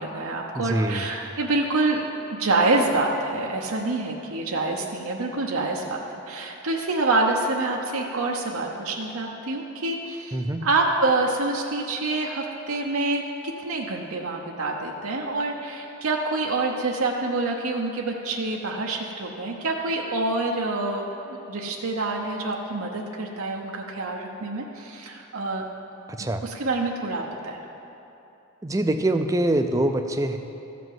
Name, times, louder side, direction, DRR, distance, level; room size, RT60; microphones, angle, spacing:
voice 1, 0.0-2.0 2.3-25.6 26.2-27.6, right 2 dB, 85° right, 0 dB, 0.8 m, -27 dB
voice 2, 0.5-1.1 10.3-10.7 26.1-26.4 28.6-30.4, right 1 dB, 15° right, 6 dB, 0.4 m, -24 dB
13.5 x 5.1 x 7.7 m, 3.0 s
head